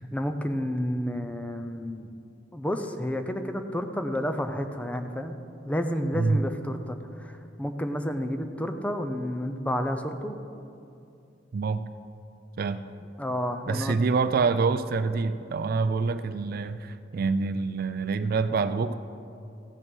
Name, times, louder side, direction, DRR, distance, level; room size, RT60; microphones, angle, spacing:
voice 1, 0.1-2.1 2.5-5.4 5.6-10.4 13.2-14.0, equal, 5° left, 7 dB, 0.6 m, -30 dB
voice 2, 11.5-11.9 12.6-12.8 13.7-18.9, right 4 dB, 50° right, 12 dB, 0.4 m, -26 dB
15.0 x 6.3 x 6.2 m, 2.6 s
head